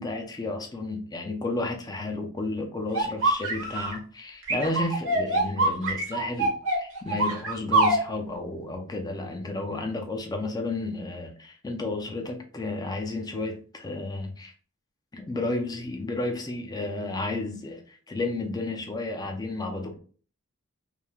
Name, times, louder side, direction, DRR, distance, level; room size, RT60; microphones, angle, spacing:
voice 1, 0.0-14.5 15.1-20.0, left 2 dB, 15° left, 0.4 m, -32 dB
sound 1, 2.9-3.9 4.5-8.0, right 2 dB, 60° right, 0.8 m, -24 dB
3.1 x 2.1 x 2.2 m
head